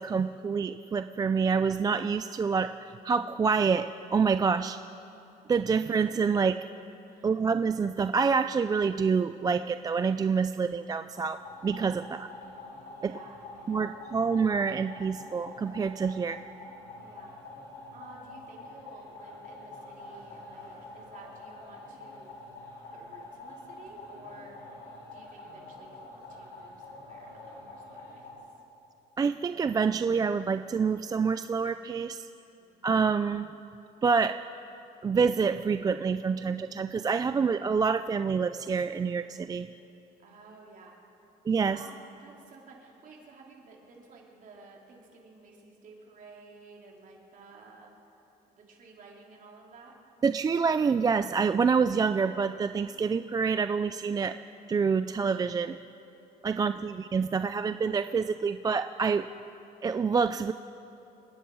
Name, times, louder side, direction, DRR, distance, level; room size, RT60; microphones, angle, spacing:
voice 1, 0.0-4.8 5.5-6.5 7.2-12.3 13.0-13.2 13.7-16.4 29.2-32.3 32.8-33.5 34.0-34.4 35.0-39.7 41.5-41.8 50.2-54.3 54.7-55.8 56.4-59.3 59.8-60.5, right 5 dB, 20° right, 11 dB, 0.3 m, -27 dB
sound 1, 11.0-28.3, left 2 dB, 75° left, 3.7 m, -46 dB
voice 2, 12.9-13.9 17.0-17.4 17.9-22.3 22.9-24.6 25.1-28.3 32.6-32.8 40.2-41.0 41.7-47.9 48.6-50.0 56.5-56.9, right 3 dB, 50° right, -1 dB, 3.5 m, -53 dB
28.5 x 10.0 x 4.7 m, 2.9 s
cardioid pair, 110°, 17 cm